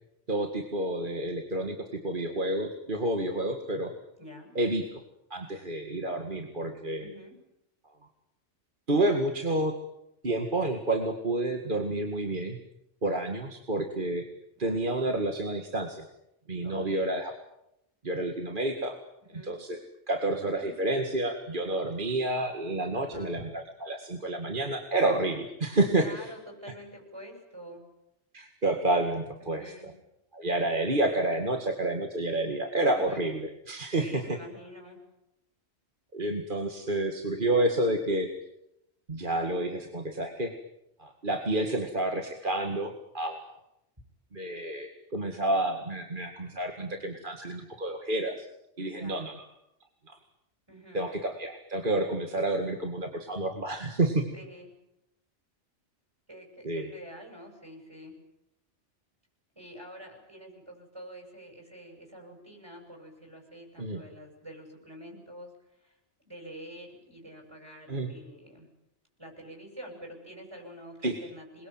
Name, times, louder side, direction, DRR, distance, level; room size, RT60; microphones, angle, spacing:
voice 1, 0.3-1.8 2.0-3.9 4.6-4.8 5.3-7.1 8.9-9.7 10.2-12.6 13.0-14.2 14.6-16.0 16.5-17.3 18.0-19.0 19.4-19.8 20.1-23.4 23.9-26.1 28.3-29.6 30.3-34.2 36.1-38.3 39.1-40.5 41.0-43.6 44.3-48.5 48.8-49.4 50.9-54.2 56.6-56.9 63.8-64.0 67.9-68.1 71.0-71.2, right 2 dB, 45° right, 4 dB, 2.3 m, -29 dB
voice 2, 4.2-4.6 7.0-7.4 14.5-14.8 16.6-17.1 19.2-19.5 20.6-20.8 22.9-23.3 26.0-27.8 29.4-29.9 32.9-33.2 34.0-35.0 48.8-49.3 50.7-51.1 54.3-54.7 56.3-58.1 59.5-65.5 65.8-66.0 66.2-68.7 69.2-71.7, equal, 25° right, 1 dB, 7.9 m, -47 dB
27.5 x 22.5 x 9.0 m, 0.85 s
omnidirectional pair, 1.2 m